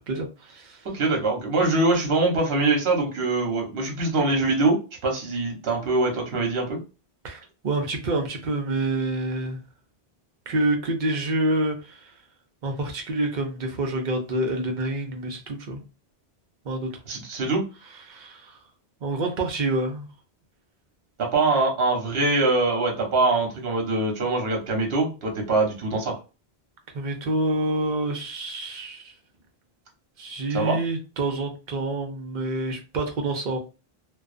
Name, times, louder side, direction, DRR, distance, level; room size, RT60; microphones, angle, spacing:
voice 1, 0.1-0.8 7.2-9.6 10.5-12.1 12.6-15.8 16.6-17.0 18.1-18.6 19.0-20.1 26.9-29.1 30.2-33.6, right 2 dB, 50° right, 0.7 m, -27 dB
voice 2, 0.8-6.8 17.1-17.6 21.2-26.1 30.5-30.8, right 2 dB, 70° right, 1.1 m, -23 dB
2.4 x 2.2 x 2.4 m
omnidirectional pair, 1.1 m